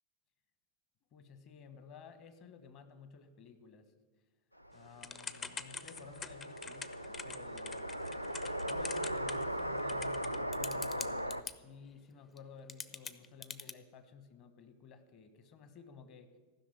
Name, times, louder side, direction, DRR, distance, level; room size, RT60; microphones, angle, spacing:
voice 1, 1.1-3.9 4.7-7.9 8.6-16.3, left 5 dB, 40° left, 10 dB, 1.3 m, -54 dB
sound 1, 4.6-11.4, equal, 90° left, 0.4 m, -38 dB
Typing / Telephone, 5.0-11.5 12.4-12.5 12.7-13.7, left 5 dB, 20° left, 0.6 m, -44 dB
15.0 x 6.4 x 9.3 m, 1.3 s
figure-of-eight pair, 90°, 0 cm